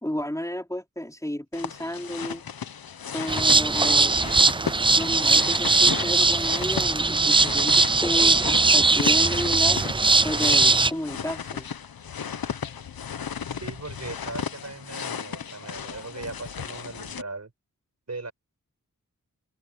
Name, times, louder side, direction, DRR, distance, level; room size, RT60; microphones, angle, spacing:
voice 1, 0.0-2.4 3.1-4.3 4.9-9.8 10.2-11.7, left 1 dB, 10° left, 3.6 m, -32 dB
sound 1, 1.5-17.2, left 7 dB, 85° left, 1.1 m, -35 dB
sound 2, 3.3-10.9, right 3 dB, 15° right, 0.4 m, -20 dB
voice 2, 13.5-17.5 18.1-18.3, right 3 dB, 50° right, 5.8 m, -38 dB
wide cardioid pair, 60°, 35 cm